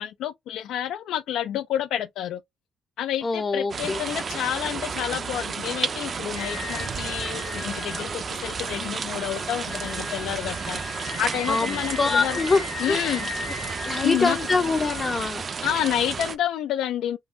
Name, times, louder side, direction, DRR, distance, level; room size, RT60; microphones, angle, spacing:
voice 1, 0.0-2.4 3.0-10.8 11.2-12.4 12.8-13.3 14.0-14.4 15.6-17.2, left 11 dB, 85° left, 0.4 m, -29 dB
voice 2, 3.2-4.0 11.5-13.2 13.9-15.5, left 4 dB, 35° left, 0.6 m, -24 dB
sound 1, 3.7-16.3, right 5 dB, 45° right, 0.5 m, -32 dB
Singing, 6.3-15.2, left 5 dB, 60° left, 1.5 m, -38 dB
3.7 x 2.3 x 2.5 m
cardioid pair, 90°, 0 cm